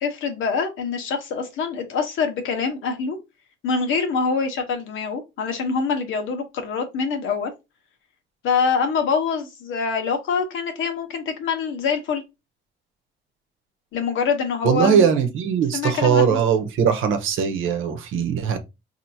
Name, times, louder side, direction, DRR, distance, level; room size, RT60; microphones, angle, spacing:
voice 1, 0.0-3.2 3.6-7.5 8.4-12.2 13.9-15.1 15.7-16.4, left 5 dB, 80° left, 1.0 m, -25 dB
voice 2, 14.6-18.6, right 7 dB, 85° right, 0.8 m, -20 dB
4.3 x 2.7 x 2.7 m
cardioid pair, 90°, 20 cm